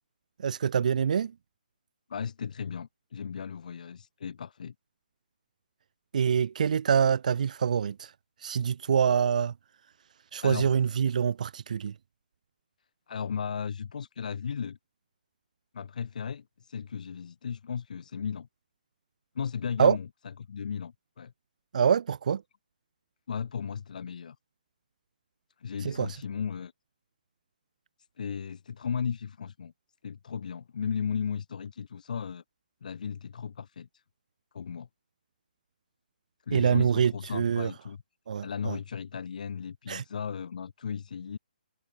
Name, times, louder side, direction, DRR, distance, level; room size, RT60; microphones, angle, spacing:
voice 1, 0.4-1.3 6.1-8.1 8.4-9.5 10.3-11.9 19.8-20.0 21.7-22.4 25.8-26.1 36.5-37.7 38.3-38.8 39.9-40.0, right 7 dB, 55° right, 0.4 m, -25 dB
voice 2, 2.1-4.7 10.4-10.7 13.1-14.8 15.7-18.5 19.3-20.1 20.5-21.3 23.3-24.3 25.6-26.7 28.2-29.7 30.0-32.4 32.8-34.0 34.5-34.9 36.5-38.0 38.4-41.4, left 7 dB, 55° left, 1.7 m, -35 dB
hypercardioid pair, 165°, 5 cm